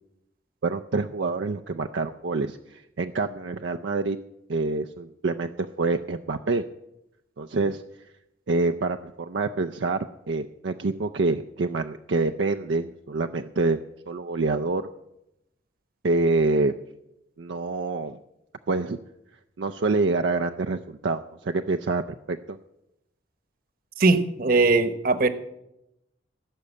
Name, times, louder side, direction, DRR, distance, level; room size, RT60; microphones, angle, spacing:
voice 1, 0.6-4.2 4.5-6.6 7.4-7.8 8.5-14.9 16.0-16.7 17.4-18.2 18.7-19.0 19.6-22.0 22.3-22.6, right 3 dB, 70° right, 7 dB, 0.5 m, -26 dB
voice 2, 24.0-25.3, right 3 dB, 50° right, 10 dB, 1.1 m, -20 dB
17.0 x 6.7 x 8.3 m, 0.87 s
head